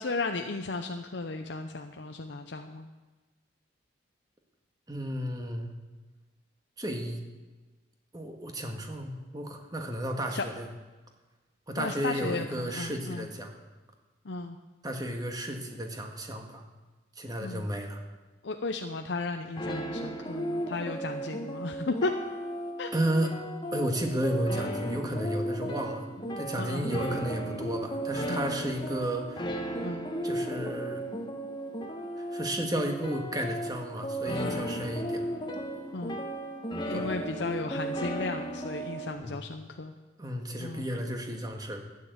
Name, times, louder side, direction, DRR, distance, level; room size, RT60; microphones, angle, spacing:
voice 1, 0.0-2.9 10.3-10.4 11.7-13.3 14.2-14.6 17.4-17.7 18.4-22.1 22.8-22.9 25.6-25.7 26.6-27.0 28.3-28.5 29.8-30.1 34.4-34.6 35.9-36.2 36.9-40.0 40.6-40.9, left 3 dB, 65° left, 5 dB, 0.7 m, -35 dB
voice 2, 4.9-5.7 6.8-7.2 8.1-10.7 11.7-13.5 14.8-16.6 17.2-18.0 22.9-23.3 23.7-26.1 26.4-29.5 30.2-31.0 32.2-35.3 36.9-37.1 39.2-39.4 40.2-41.8, right 1 dB, 20° right, 3 dB, 1.7 m, -33 dB
sound 1, 19.6-39.1, right 1 dB, 25° left, 1.3 m, -35 dB
13.0 x 9.6 x 8.0 m, 1.2 s
head